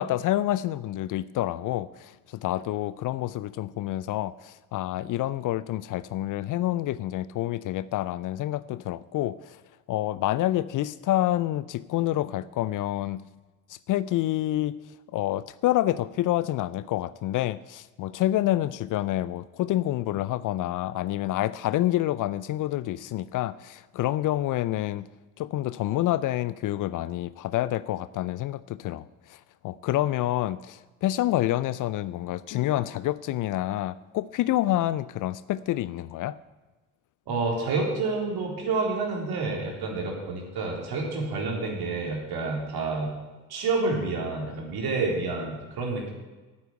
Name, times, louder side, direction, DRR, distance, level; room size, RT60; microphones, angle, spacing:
voice 1, 0.0-2.1 2.4-9.6 9.9-13.2 13.7-14.7 15.1-25.0 25.4-29.0 29.3-36.4, left 14 dB, 45° left, 18 dB, 0.5 m, -28 dB
voice 2, 37.3-43.1 43.5-46.1, right 3 dB, 55° right, 0 dB, 3.9 m, -29 dB
9.2 x 8.6 x 8.8 m, 1.2 s
hypercardioid pair, 60°, 44 cm